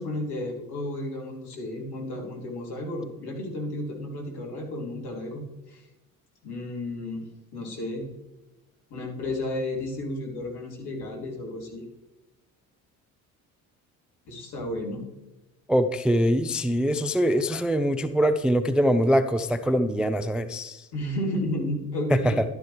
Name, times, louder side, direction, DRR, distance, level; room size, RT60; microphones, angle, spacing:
voice 1, 0.0-5.9 6.4-7.2 7.5-8.1 8.9-11.8 14.3-15.0 20.9-22.4, left 1 dB, 55° left, 0 dB, 2.8 m, -32 dB
voice 2, 15.7-20.9 22.1-22.4, equal, ahead, 9 dB, 0.4 m, -23 dB
11.5 x 10.5 x 3.2 m, 1.0 s
figure-of-eight pair, 55°, 45 cm